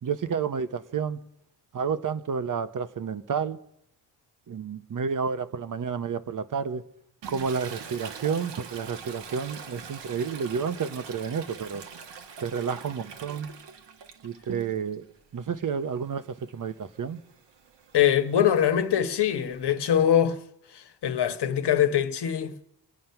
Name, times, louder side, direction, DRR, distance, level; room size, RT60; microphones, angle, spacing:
voice 1, 0.0-1.2 1.7-3.6 4.5-6.8 7.3-11.8 12.4-13.5 14.2-15.1 15.3-17.2, right 6 dB, 45° right, 0.9 m, -30 dB
Toilet flush, 7.2-15.0 15.4-19.7, right 6 dB, 75° right, 1.7 m, -44 dB
voice 2, 17.9-20.4 20.7-22.5, left 9 dB, 70° left, 1.3 m, -23 dB
26.0 x 9.3 x 5.8 m
wide cardioid pair, 125°, 43 cm